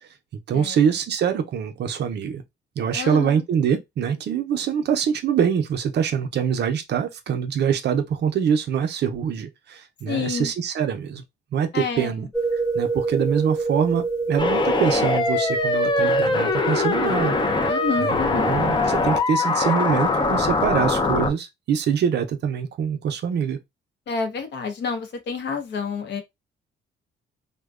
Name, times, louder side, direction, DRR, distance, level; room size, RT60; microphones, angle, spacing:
voice 1, 0.5-2.4 2.8-11.2 11.5-17.4 17.6-23.6, right 7 dB, 60° right, 0.5 m, -24 dB
voice 2, 2.9-3.4 10.0-10.5 11.7-12.1 17.7-18.6 24.1-26.2, left 5 dB, 60° left, 0.7 m, -28 dB
sound 1, 12.3-19.2, right 4 dB, 5° left, 0.8 m, -28 dB
sound 2, 14.4-21.3, left 3 dB, 25° left, 0.4 m, -22 dB
2.5 x 2.1 x 2.3 m
cardioid pair, 90°, 20 cm